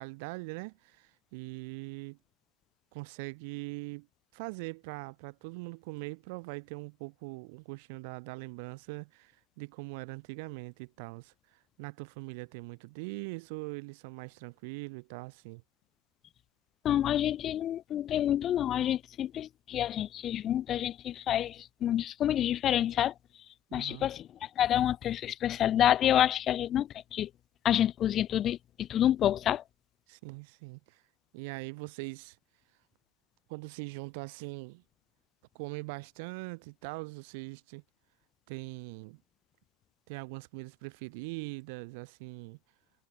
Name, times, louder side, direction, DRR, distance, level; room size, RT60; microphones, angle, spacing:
voice 1, 0.0-2.2 2.9-4.1 4.3-15.6 23.7-24.1 30.1-31.0 31.3-32.4 33.5-34.8 35.5-37.8 38.5-39.2 40.1-42.6, right 28 dB, 45° right, 2.9 m, -42 dB
voice 2, 16.8-23.1 23.7-24.2 24.6-27.3 27.6-28.6 28.9-29.6, left 11 dB, 30° left, 0.9 m, -28 dB
figure-of-eight pair, 90°, 0 cm